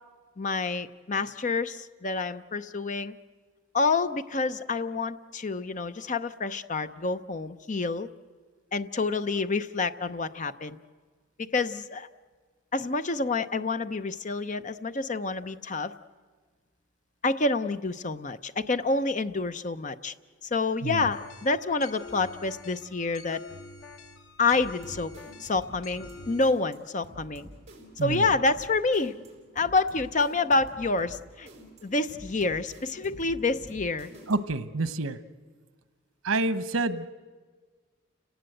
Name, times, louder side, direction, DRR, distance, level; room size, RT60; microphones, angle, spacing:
voice 1, 0.4-3.1 3.7-8.1 8.7-10.8 11.4-12.1 12.7-15.9 17.2-20.1 20.5-23.4 24.4-25.1 25.4-27.5 28.0-29.2 29.6-31.5 31.8-34.1, left 3 dB, 35° left, 11 dB, 0.7 m, -28 dB
sound 1, 21.1-26.5, left 2 dB, 85° left, 1.3 m, -47 dB
sound 2, 24.5-34.6, right 1 dB, 35° right, 4.4 m, -49 dB
voice 2, 34.3-35.2 36.2-37.1, right 3 dB, 90° right, 13 dB, 0.9 m, -28 dB
30.0 x 18.0 x 7.8 m, 1.5 s
head